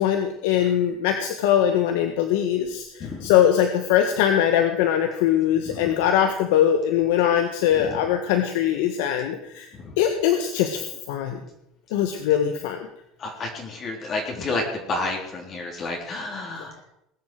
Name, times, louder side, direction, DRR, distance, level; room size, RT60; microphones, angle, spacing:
voice 1, 0.0-9.7 10.0-10.8 11.1-11.4 11.9-12.8, left 10 dB, 85° left, 5 dB, 1.7 m, -21 dB
voice 2, 3.0-3.3 5.7-5.8 9.8-9.9 13.2-14.6 14.9-16.8, left 2 dB, 35° left, 0 dB, 3.7 m, -30 dB
20.5 x 7.9 x 7.8 m, 0.80 s
cardioid pair, 135°, 0 cm